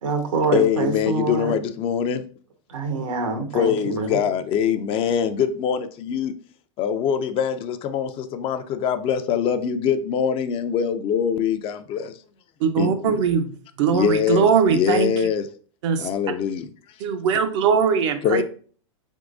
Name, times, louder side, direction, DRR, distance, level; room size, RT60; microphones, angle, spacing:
voice 1, 0.0-1.6 2.7-4.2, right 4 dB, 85° right, 1.1 m, -25 dB
voice 2, 0.5-2.2 3.5-6.3 6.8-12.1 12.8-13.1 13.9-15.5 16.0-16.7 18.2-18.4, left 7 dB, 35° left, 0.4 m, -23 dB
voice 3, 12.6-13.5 13.8-15.1 15.8-16.1 17.0-18.4, right 6 dB, 65° right, 0.6 m, -20 dB
4.5 x 3.6 x 2.4 m
hypercardioid pair, 110°, 16 cm